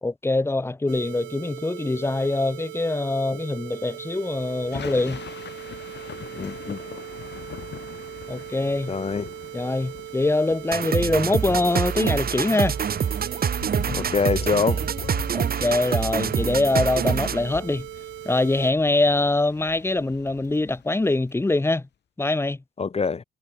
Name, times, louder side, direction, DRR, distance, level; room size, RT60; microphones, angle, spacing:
voice 1, 0.0-5.2 8.3-8.9 9.5-12.8 15.3-17.9 18.2-21.9 22.2-22.6, left 2 dB, 10° left, 1.0 m, -23 dB
sound 1, 0.9-18.7, right 14 dB, 85° right, 4.1 m, -39 dB
Thunder / Rain, 3.8-21.3, left 9 dB, 60° left, 7.8 m, -42 dB
voice 2, 6.3-6.8 8.9-9.3 13.9-14.8 22.8-23.2, left 5 dB, 30° left, 1.4 m, -25 dB
sound 2, 10.7-17.5, right 7 dB, 50° right, 3.0 m, -26 dB
cardioid pair, 90°, 20 cm